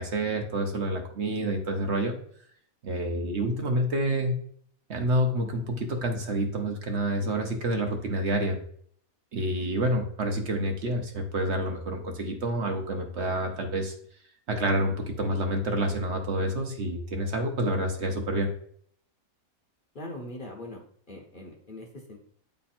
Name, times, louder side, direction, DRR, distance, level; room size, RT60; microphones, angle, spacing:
voice 1, 0.0-2.2 2.8-4.4 4.9-8.6 9.3-13.9 14.5-18.5, right 1 dB, 55° right, 3 dB, 1.0 m, -28 dB
voice 2, 19.9-20.8 21.1-22.2, left 1 dB, 40° left, 1 dB, 1.0 m, -41 dB
8.5 x 3.3 x 4.3 m, 0.62 s
omnidirectional pair, 1.5 m